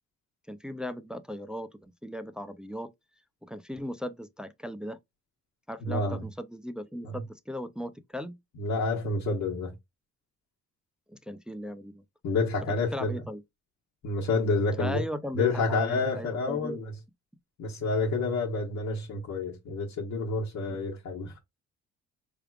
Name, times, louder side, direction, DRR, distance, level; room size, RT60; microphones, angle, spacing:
voice 1, 0.5-2.9 3.4-5.0 5.7-8.4 11.1-12.0 12.9-13.4 14.8-16.8 20.7-20.8, equal, 5° right, 0.4 m, -38 dB
voice 2, 5.8-6.2 7.0-7.1 8.6-9.7 12.2-13.2 14.0-15.0 15.3-16.8 17.6-21.3, left 3 dB, 70° left, 1.2 m, -29 dB
4.6 x 3.5 x 2.4 m
cardioid pair, 90°, 30 cm